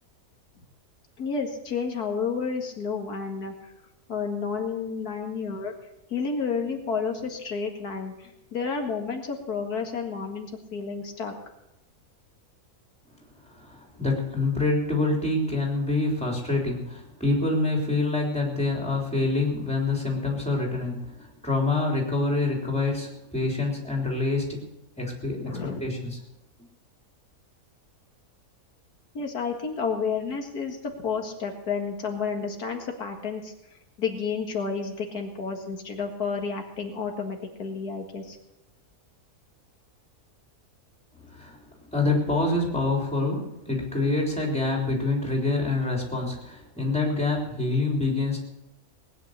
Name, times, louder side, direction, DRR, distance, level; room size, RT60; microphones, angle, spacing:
voice 1, 1.2-3.5 4.1-5.7 6.1-11.3 25.4-25.9 29.1-33.5 34.0-38.4, left 5 dB, 90° left, 3 dB, 2.4 m, -31 dB
voice 2, 13.4-24.6 25.0-26.2 41.2-48.4, left 2 dB, 5° left, -1 dB, 3.6 m, -26 dB
19.0 x 9.9 x 6.6 m, 0.91 s
omnidirectional pair, 1.6 m